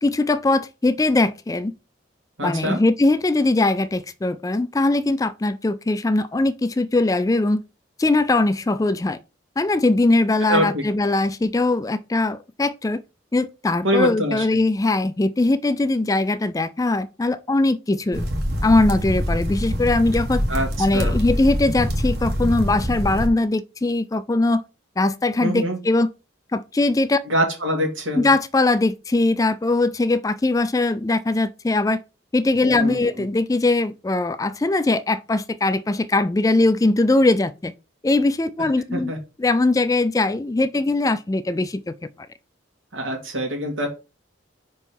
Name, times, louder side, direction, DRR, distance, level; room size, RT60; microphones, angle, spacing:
voice 1, 0.0-1.7 2.4-7.6 8.0-9.2 9.6-13.0 13.3-18.2 18.6-20.4 20.8-24.6 25.0-26.1 26.5-27.2 28.2-32.0 32.3-37.7 38.0-39.1 39.4-41.9, left 2 dB, 15° left, 0.3 m, -21 dB
voice 2, 2.4-2.8 10.5-10.8 13.8-14.5 20.5-20.7 20.9-21.2 25.4-25.8 27.2-28.3 32.8-33.3 38.9-39.2 42.9-43.9, equal, 90° right, 2.5 m, -24 dB
sound 1, 18.1-23.3, equal, 55° right, 1.4 m, -25 dB
5.4 x 4.5 x 5.4 m
head